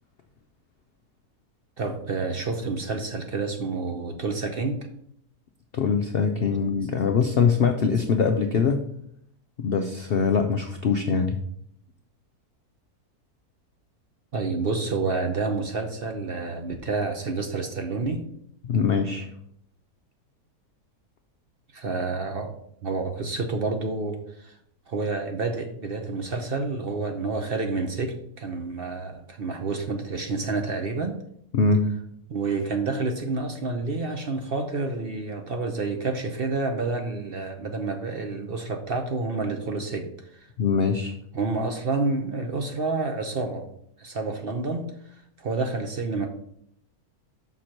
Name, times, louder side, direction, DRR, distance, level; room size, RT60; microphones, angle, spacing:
voice 1, 1.8-4.9 14.3-18.2 21.7-22.5 22.8-24.5 24.9-31.1 32.3-40.1 41.3-43.7 44.0-44.9 45.4-46.3, right 3 dB, 50° right, 4 dB, 0.7 m, -29 dB
voice 2, 5.7-8.8 9.6-11.4 18.6-19.3 31.5-31.9 40.6-41.1, left 5 dB, 70° left, 5 dB, 0.5 m, -23 dB
5.9 x 4.4 x 6.3 m, 0.70 s
omnidirectional pair, 1.7 m